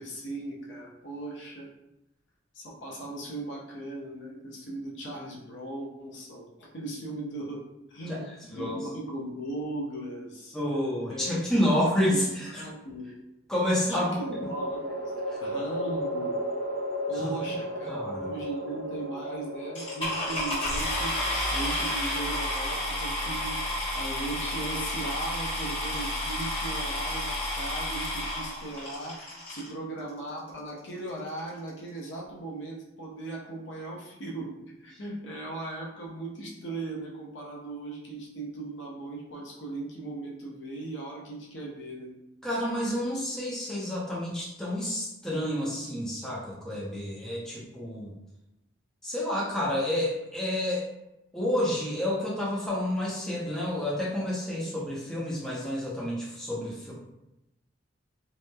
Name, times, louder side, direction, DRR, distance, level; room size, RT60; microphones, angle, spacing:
voice 1, 0.0-1.7 2.5-7.6 7.9-10.6 11.1-11.3 12.1-13.1 13.9-15.1 15.4-16.4 17.1-42.1, right 2 dB, 65° left, -3 dB, 0.6 m, -38 dB
voice 2, 8.1-8.8 10.5-12.6 13.5-14.2 15.3-15.4 17.1-17.3 17.9-18.3 42.4-48.1 49.0-50.9 51.3-56.9, left 1 dB, 5° left, -7 dB, 0.5 m, -29 dB
sound 1, 10.9-11.5 13.7-25.0, equal, 50° right, 0.4 m, -36 dB
sound 2, 19.7-29.7 30.5-30.6 31.1-31.2 31.4-31.7, left 1 dB, 30° left, 0.9 m, -31 dB
2.9 x 2.0 x 2.2 m, 0.88 s
head